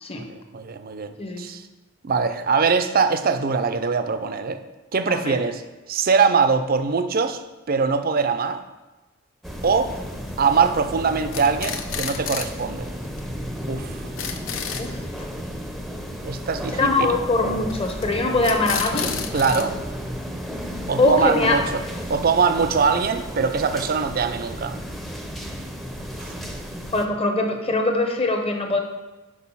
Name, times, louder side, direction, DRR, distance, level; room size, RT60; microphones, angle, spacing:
voice 1, 0.2-1.6 2.0-4.6 4.9-5.6 5.9-7.4 7.7-8.6 9.6-9.9 10.4-12.9 13.7-14.1 16.2-17.1 19.3-19.8 20.9-21.8 22.1-24.8 26.2-26.3, right 5 dB, 45° right, 10 dB, 0.5 m, -22 dB
voice 2, 5.1-5.4 14.8-15.0 16.8-19.1 21.0-21.6 26.9-28.8, left 2 dB, 30° left, 4 dB, 0.8 m, -22 dB
sound 1, 9.4-27.1, equal, ahead, 0.6 m, -33 dB
sound 2, 10.3-10.7 11.1-12.6 12.9-13.0 13.2-13.3 13.6-13.7 13.9-14.9 17.7-18.1 18.4-19.6, left 7 dB, 75° left, 0.6 m, -31 dB
6.2 x 4.8 x 5.6 m, 1.1 s
head